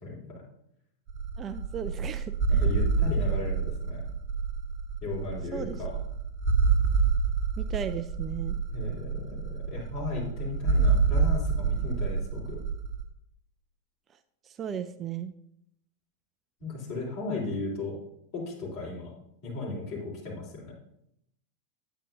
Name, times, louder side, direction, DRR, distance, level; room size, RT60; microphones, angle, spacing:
voice 1, 0.0-0.4 2.5-4.0 5.0-6.0 8.7-12.6 16.6-18.0 18.3-19.1 19.4-20.7, left 3 dB, 45° left, -3 dB, 3.7 m, -36 dB
sound 1, 1.1-13.0, right 5 dB, 40° right, 0.8 m, -27 dB
voice 2, 1.4-2.6 5.5-5.8 7.6-8.6 14.4-15.3, right 8 dB, 25° right, 11 dB, 0.3 m, -36 dB
9.1 x 8.9 x 2.6 m, 0.76 s
figure-of-eight pair, 90°, 0 cm